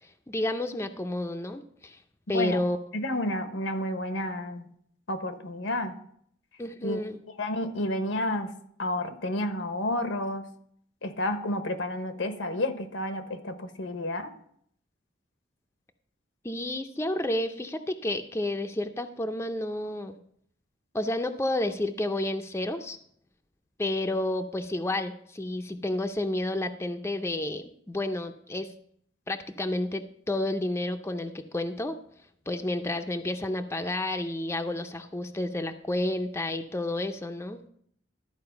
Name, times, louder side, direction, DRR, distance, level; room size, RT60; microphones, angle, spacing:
voice 1, 0.3-2.0 2.3-2.8 6.6-7.2 16.4-20.2 20.9-23.0 23.8-28.7 29.3-32.0 32.5-37.6, left 1 dB, 15° left, 6 dB, 0.5 m, -30 dB
voice 2, 2.9-4.7 5.1-5.9 6.8-7.0 7.3-8.5 8.8-10.5 11.0-14.3, left 1 dB, 85° left, 8 dB, 1.0 m, -30 dB
12.5 x 4.7 x 5.7 m, 0.65 s
head